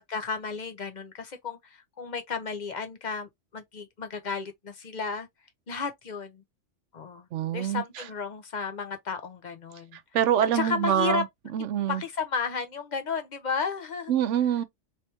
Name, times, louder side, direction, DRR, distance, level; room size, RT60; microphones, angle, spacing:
voice 1, 0.0-5.3 5.7-6.4 6.9-7.2 7.5-10.0 10.5-11.2 11.9-14.1, left 5 dB, 45° left, 0.8 m, -33 dB
voice 2, 7.3-7.8 9.9-11.3 11.5-12.0 14.1-14.6, right 10 dB, 75° right, 0.9 m, -25 dB
3.4 x 3.2 x 2.9 m
omnidirectional pair, 1.2 m